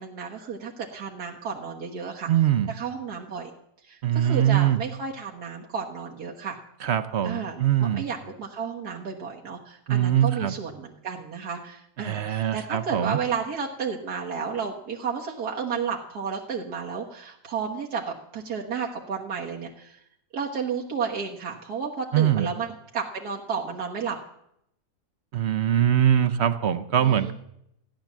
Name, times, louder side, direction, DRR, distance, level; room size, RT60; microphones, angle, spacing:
voice 1, 0.0-2.3 2.7-3.5 3.9-6.6 7.2-7.5 7.8-20.0 20.3-24.2 27.0-27.3, right 6 dB, 80° right, -1 dB, 1.8 m, -32 dB
voice 2, 2.3-2.7 4.0-4.8 6.8-8.1 9.9-10.5 12.0-13.2 22.1-22.5 25.3-27.3, right 10 dB, 55° right, 11 dB, 0.8 m, -22 dB
14.5 x 10.0 x 7.3 m, 0.77 s
omnidirectional pair, 1.6 m